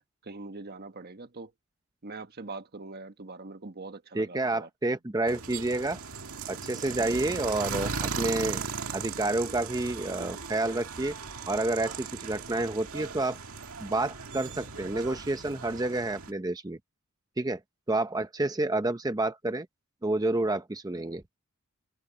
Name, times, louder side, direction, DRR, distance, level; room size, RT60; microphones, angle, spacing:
voice 1, 0.0-1.5 2.0-4.7, right 3 dB, 45° right, 1.4 m, -43 dB
voice 2, 4.1-6.0 6.5-8.6 8.9-11.2 11.5-13.4 13.8-16.8 17.4-17.6 17.9-19.7 20.0-21.2, right 2 dB, 20° right, 0.7 m, -29 dB
sound 1, 5.3-16.3, right 5 dB, 75° right, 2.1 m, -37 dB
head